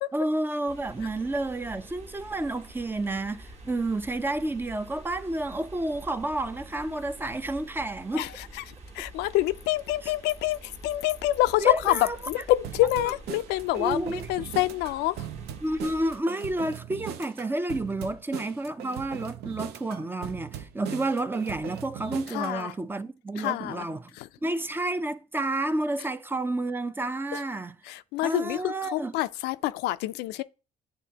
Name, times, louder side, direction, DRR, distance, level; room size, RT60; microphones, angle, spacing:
voice 1, 0.1-8.3 10.0-10.1 11.6-12.2 13.8-14.3 15.6-24.1 24.4-27.7 28.2-29.1, right 2 dB, 10° right, 0.4 m, -30 dB
sound 1, 0.7-16.2, right 1 dB, 40° right, 1.3 m, -47 dB
voice 2, 8.1-8.6 8.9-15.3 22.3-22.7 23.4-23.9 24.2-24.3 27.3-27.4 27.8-30.4, left 16 dB, 90° left, 0.4 m, -27 dB
sound 2, 12.6-22.6, right 10 dB, 75° right, 0.6 m, -39 dB
10.0 x 3.4 x 2.8 m
cardioid pair, 110°, 17 cm